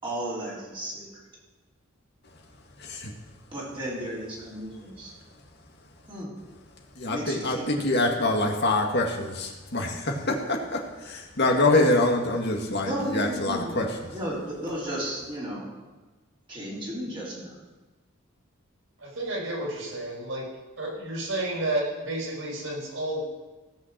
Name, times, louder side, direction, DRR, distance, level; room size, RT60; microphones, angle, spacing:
voice 1, 0.0-1.2 3.5-5.1 6.1-6.3 7.1-7.7 12.8-13.8 14.1-15.7 16.5-17.6, right 1 dB, 25° right, -7 dB, 4.1 m, -34 dB
voice 2, 2.8-3.1 7.0-13.9, left 2 dB, 55° left, 1 dB, 2.0 m, -25 dB
voice 3, 19.0-20.5 20.8-23.2, right 1 dB, 70° right, -3 dB, 5.2 m, -31 dB
16.5 x 5.8 x 7.5 m, 1.2 s
head